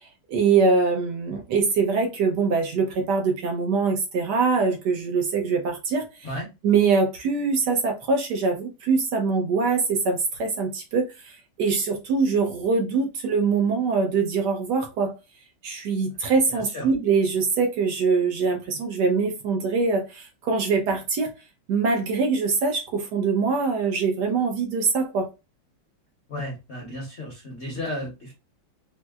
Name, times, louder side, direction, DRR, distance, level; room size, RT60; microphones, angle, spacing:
voice 1, 0.3-6.3 6.6-15.1 15.6-21.3 21.7-25.3, right 4 dB, 70° right, 1.2 m, -23 dB
voice 2, 16.5-16.9 26.3-28.3, left 1 dB, 50° left, 0.9 m, -33 dB
4.3 x 2.0 x 2.3 m
omnidirectional pair, 2.1 m